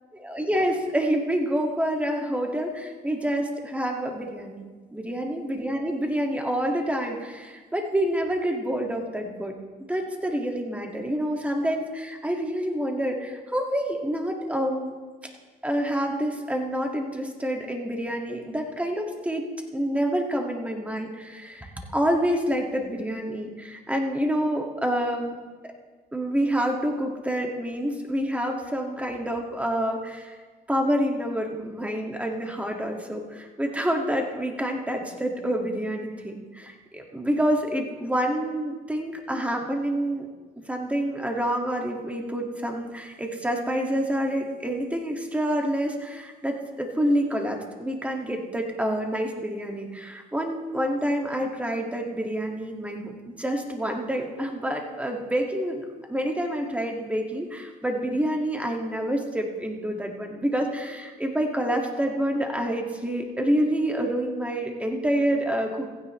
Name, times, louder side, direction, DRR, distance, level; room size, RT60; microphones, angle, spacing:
voice 1, 0.2-9.6 9.9-14.9 15.6-19.5 19.7-25.4 26.1-30.4 30.7-40.3 40.6-65.9, equal, 10° right, 1 dB, 2.0 m, -27 dB
16.0 x 15.5 x 3.2 m, 1.4 s
cardioid pair, 110°, 17 cm